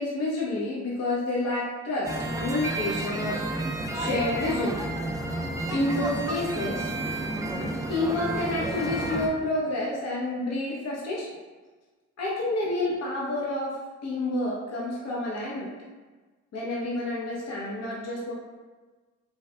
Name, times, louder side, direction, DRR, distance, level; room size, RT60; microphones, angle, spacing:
voice 1, 0.0-3.4 3.9-4.8 5.7-6.9 7.9-11.3 12.2-15.7 16.5-18.3, left 2 dB, 60° left, -5 dB, 0.9 m, -29 dB
sound 1, 2.1-9.3, right 1 dB, 10° right, 0.3 m, -31 dB
3.3 x 3.2 x 2.3 m, 1.3 s
cardioid pair, 90°, 30 cm